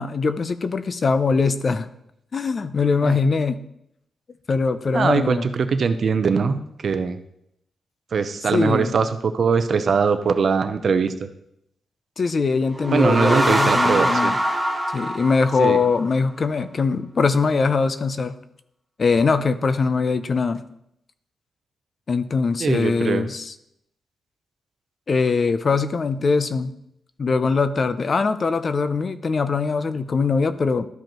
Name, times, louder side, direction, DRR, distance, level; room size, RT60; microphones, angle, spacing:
voice 1, 0.0-1.9 2.3-3.6 4.5-5.5 8.5-8.9 12.2-14.4 14.9-18.4 19.0-20.6 22.1-23.5 25.1-26.8 27.2-30.9, left 4 dB, 40° left, 12 dB, 0.4 m, -22 dB
voice 2, 4.9-7.2 8.1-11.3 12.9-14.3 15.6-15.8 22.6-23.3, right 5 dB, 50° right, 10 dB, 0.6 m, -21 dB
sound 1, 12.7-16.2, equal, 5° right, 0.9 m, -23 dB
13.0 x 5.1 x 3.0 m, 0.77 s
wide cardioid pair, 140°, 0 cm